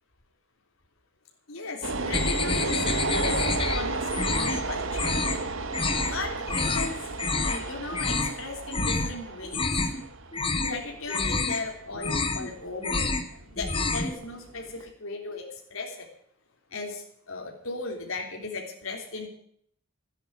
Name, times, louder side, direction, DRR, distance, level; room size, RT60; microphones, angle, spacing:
voice 1, 1.5-2.9 3.2-5.1 6.0-7.1 7.4-9.7 10.5-13.1 13.5-16.1 16.7-19.3, left 3 dB, 75° left, 0 dB, 3.3 m, -36 dB
sound 1, 1.8-14.9, right 3 dB, 65° right, 1.2 m, -33 dB
sound 2, 2.1-3.8 4.1-4.6 4.9-5.4 5.7-6.1 6.5-6.9 7.2-7.6 7.9-8.4 8.7-9.1 9.4-10.0 10.3-10.8 11.1-11.6 11.9-12.5 12.8-13.3 13.6-14.1, left 3 dB, 25° left, 1.5 m, -28 dB
13.0 x 10.0 x 8.7 m, 0.65 s
head